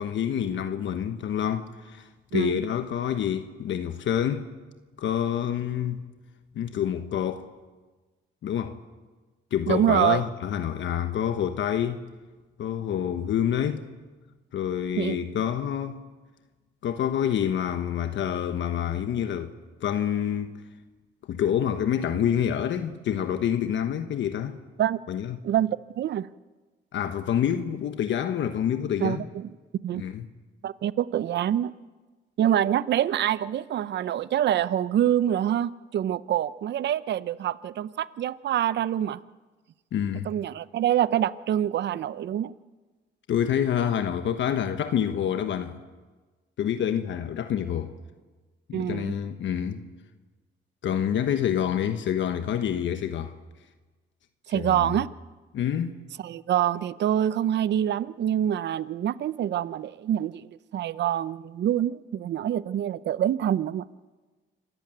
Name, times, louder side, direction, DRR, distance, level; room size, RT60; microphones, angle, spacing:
voice 1, 0.0-4.5 5.0-6.1 6.5-7.5 8.4-8.8 9.5-12.0 12.6-13.9 14.5-16.0 16.8-19.5 19.8-20.5 21.3-24.6 25.1-25.4 26.9-29.3 29.9-30.3 39.9-40.3 43.3-45.8 46.6-47.9 48.7-49.8 50.8-53.3 54.5-55.0 55.5-56.0, left 9 dB, 70° left, 1.2 m, -27 dB
voice 2, 9.7-10.2 15.0-15.2 24.8-25.0 25.4-26.3 29.0-29.5 29.8-30.0 30.6-31.7 32.4-39.2 40.3-42.5 48.7-49.1 54.5-55.1 56.2-60.5 60.7-63.8, right 11 dB, 60° right, 0.7 m, -26 dB
26.5 x 15.0 x 9.3 m
cardioid pair, 90°, 20 cm